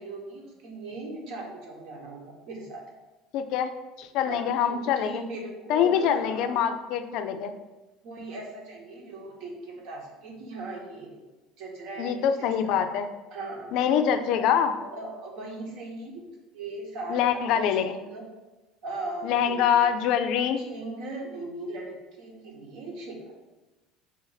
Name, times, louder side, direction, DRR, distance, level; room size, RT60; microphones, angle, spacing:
voice 1, 0.0-2.8 4.2-6.6 8.0-11.2 11.6-12.3 12.6-12.8 13.3-13.8 14.4-18.2 18.8-19.9 20.6-23.3, right 2 dB, 65° right, 0 dB, 1.1 m, -39 dB
voice 2, 3.3-3.7 4.0-5.2 5.7-7.5 12.0-13.1 13.7-14.7 17.1-18.0 19.2-20.6, left 8 dB, 65° left, 8 dB, 0.3 m, -24 dB
5.0 x 2.5 x 4.0 m, 1.1 s
cardioid pair, 130°, 0 cm